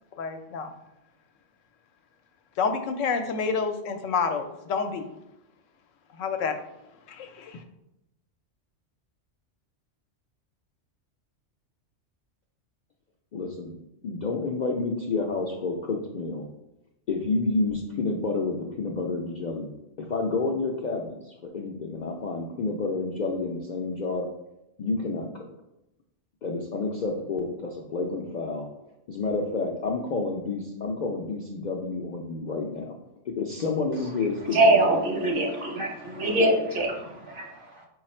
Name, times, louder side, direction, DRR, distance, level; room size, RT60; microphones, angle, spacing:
voice 1, 0.2-0.7 2.6-5.0 6.2-6.6 7.1-7.6, left 5 dB, 90° left, 7 dB, 0.9 m, -28 dB
voice 2, 13.3-13.8 14.0-16.5 17.1-24.3 24.8-25.5 26.4-28.7 29.1-33.0 33.4-35.0, left 3 dB, 60° left, -1 dB, 0.5 m, -29 dB
voice 3, 34.5-37.9, right 1 dB, 50° right, 0 dB, 0.9 m, -24 dB
4.8 x 2.4 x 4.2 m, 0.87 s
omnidirectional pair, 1.3 m